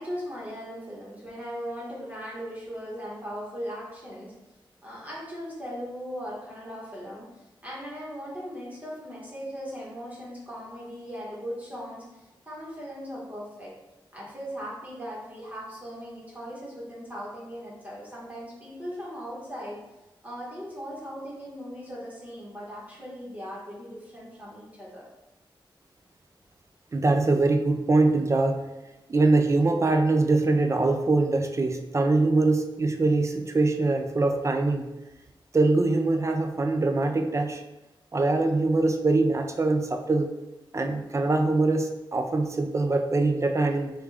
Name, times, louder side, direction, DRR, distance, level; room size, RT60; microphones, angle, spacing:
voice 1, 0.0-4.3 4.8-7.3 7.6-13.7 14.1-19.8 20.2-25.0, equal, 15° right, -6 dB, 1.1 m, -38 dB
voice 2, 26.9-28.6 29.1-34.9 35.5-37.6 38.1-40.3 40.7-43.9, right 3 dB, 35° right, 5 dB, 0.4 m, -23 dB
5.0 x 2.3 x 3.4 m, 1.0 s
wide cardioid pair, 100°, 9 cm